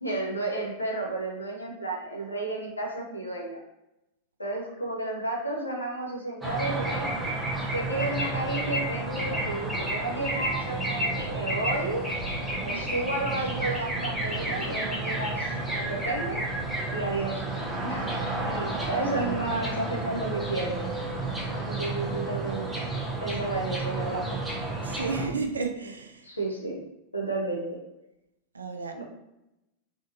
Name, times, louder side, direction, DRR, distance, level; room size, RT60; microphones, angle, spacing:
voice 1, 0.0-3.6 4.4-7.1 7.7-12.1 12.6-16.5 16.9-17.4 17.8-18.0 18.4-20.8 21.5-22.7 23.2-24.4 26.2-26.8 27.1-27.8 28.9-29.0, right 2 dB, 80° left, -1 dB, 0.8 m, -32 dB
sound 1, 6.4-25.3, right 2 dB, 10° right, 0.8 m, -31 dB
voice 2, 24.8-26.3 28.5-29.0, right 4 dB, 75° right, 5 dB, 0.4 m, -32 dB
3.7 x 2.7 x 2.7 m, 0.90 s
figure-of-eight pair, 90°, 0 cm